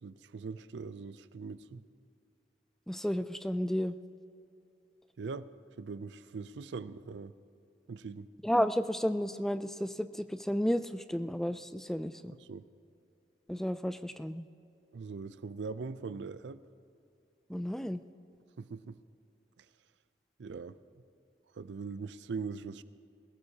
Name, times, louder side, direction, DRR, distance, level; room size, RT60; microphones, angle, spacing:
voice 1, 0.0-1.8 5.2-5.5 5.8-7.3 7.9-8.3 12.4-12.7 14.9-16.6 18.6-18.9 20.4-20.8 21.6-22.8, right 4 dB, 85° right, 15 dB, 0.4 m, -41 dB
voice 2, 2.9-4.0 8.4-12.3 13.5-14.5 17.5-18.0, equal, ahead, 11 dB, 0.3 m, -32 dB
20.5 x 17.0 x 2.8 m, 2.5 s
head